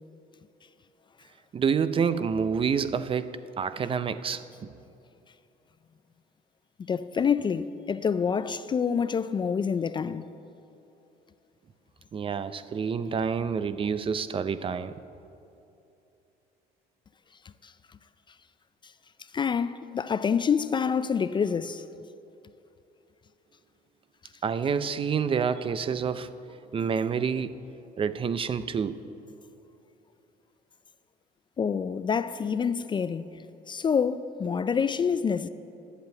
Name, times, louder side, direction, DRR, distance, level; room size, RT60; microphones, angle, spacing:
voice 1, 1.5-4.7 12.1-14.9 24.4-26.3 26.7-27.5 28.0-29.0, right 6 dB, 30° right, 0.4 m, -28 dB
voice 2, 6.9-10.3 17.6-17.7 19.3-21.8 31.6-35.5, left 6 dB, 30° left, 0.3 m, -27 dB
10.5 x 8.2 x 7.9 m
cardioid pair, 110°, 17 cm